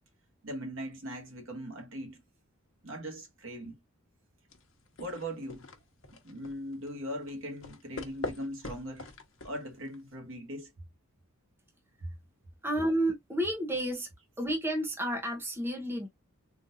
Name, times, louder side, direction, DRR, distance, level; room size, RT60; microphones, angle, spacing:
voice 1, 0.4-2.2 2.8-3.8 5.0-5.7 6.2-9.1 9.4-10.7 12.0-12.1, equal, 65° right, 1.3 m, -40 dB
sound 1, 4.5-10.1, left 2 dB, 60° left, 1.0 m, -44 dB
voice 2, 12.6-14.1 14.4-16.1, right 1 dB, 10° right, 0.7 m, -31 dB
3.8 x 2.5 x 2.7 m
head